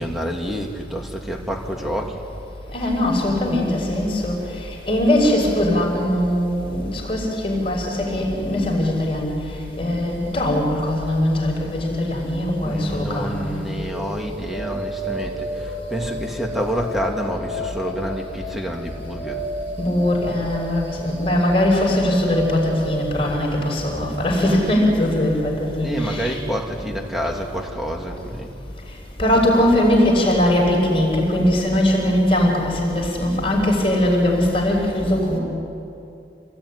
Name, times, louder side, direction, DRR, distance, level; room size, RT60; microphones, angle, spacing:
voice 1, 0.0-2.2 12.6-19.4 25.8-28.5, equal, ahead, 1 dB, 2.7 m, -28 dB
voice 2, 2.7-9.4 9.8-13.7 19.8-26.4 29.2-35.4, left 1 dB, 30° left, 0 dB, 5.6 m, -20 dB
sound 1, 13.7-27.7, right 1 dB, 90° right, 7.6 m, -34 dB
27.5 x 19.5 x 9.9 m, 2.6 s
head